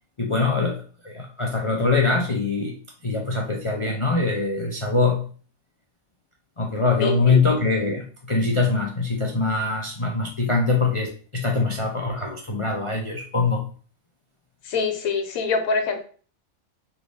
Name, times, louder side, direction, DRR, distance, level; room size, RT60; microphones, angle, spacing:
voice 1, 0.2-2.7 3.0-5.3 6.6-13.6, left 3 dB, 55° left, -1 dB, 0.3 m, -23 dB
voice 2, 7.0-7.4 14.6-16.0, left 5 dB, 90° left, 6 dB, 1.2 m, -25 dB
3.5 x 3.2 x 4.0 m, 0.40 s
omnidirectional pair, 1.4 m